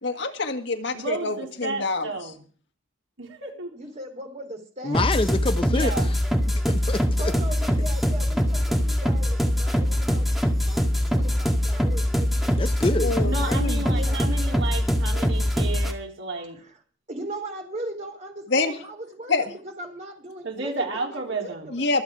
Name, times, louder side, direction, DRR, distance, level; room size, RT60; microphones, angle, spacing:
voice 1, 0.0-2.3 13.0-13.9 18.5-18.8 19.3-19.5 21.7-22.0, left 3 dB, 60° left, 1.8 m, -26 dB
voice 2, 0.9-2.4 3.2-3.8 5.6-6.1 13.2-16.6 20.4-21.7, right 3 dB, 80° right, 4.2 m, -32 dB
voice 3, 3.7-5.0 7.2-10.3 10.7-12.6 13.9-14.3 16.6-16.8 17.1-21.9, right 1 dB, 35° right, 3.6 m, -38 dB
voice 4, 4.8-6.2 6.7-7.3 12.6-13.1, left 2 dB, 25° left, 0.7 m, -26 dB
sound 1, 4.9-15.9, equal, ahead, 1.9 m, -23 dB
24.5 x 8.2 x 4.9 m
head